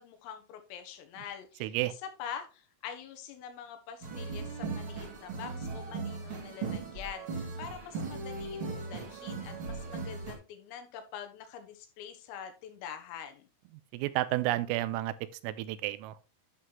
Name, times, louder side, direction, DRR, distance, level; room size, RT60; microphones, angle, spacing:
voice 1, 0.0-13.5, left 8 dB, 90° left, 3.9 m, -45 dB
voice 2, 1.6-1.9 13.9-15.1 15.4-16.2, right 16 dB, 90° right, 3.3 m, -31 dB
sound 1, 4.0-10.3, right 4 dB, 55° right, 1.4 m, -38 dB
11.0 x 5.7 x 3.1 m
omnidirectional pair, 5.9 m